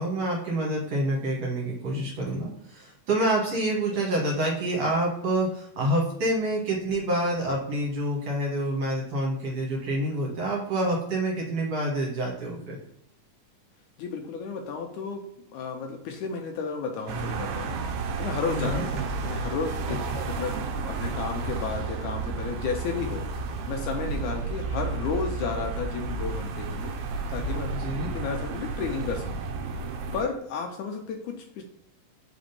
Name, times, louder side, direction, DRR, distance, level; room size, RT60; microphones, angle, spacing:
voice 1, 0.0-12.8 18.4-18.9 19.8-20.2 27.7-28.1, right 1 dB, 55° right, -3 dB, 2.3 m, -27 dB
voice 2, 14.0-15.2 15.5-17.8 18.2-20.0 20.3-23.2 23.7-26.9 27.3-27.7 28.0-29.3 30.1-31.6, left 5 dB, 75° left, 3 dB, 2.0 m, -32 dB
sound 1, 17.1-30.2, right 4 dB, 75° right, 2.1 m, -32 dB
5.1 x 3.9 x 5.2 m, 0.73 s
omnidirectional pair, 3.9 m